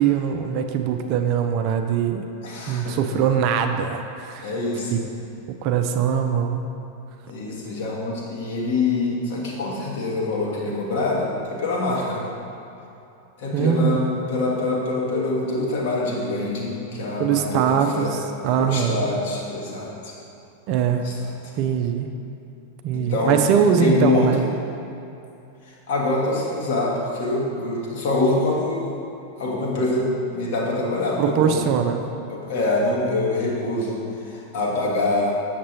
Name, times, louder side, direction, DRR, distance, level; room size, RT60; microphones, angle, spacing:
voice 1, 0.0-2.2 2.7-4.5 4.9-5.0 5.5-6.6 13.5-14.0 17.2-19.1 20.7-21.1 21.6-22.1 22.8-24.4 31.2-32.0 33.1-33.3, right 8 dB, 45° right, 6 dB, 0.4 m, -22 dB
voice 2, 2.4-3.1 4.4-5.1 7.3-12.3 13.4-18.1 18.5-20.1 21.0-21.5 22.9-23.4 23.8-24.4 25.7-29.0 29.4-31.6 32.3-35.3, left 2 dB, 55° left, -3 dB, 1.3 m, -25 dB
7.3 x 6.6 x 2.9 m, 2.7 s
figure-of-eight pair, 90°, 0 cm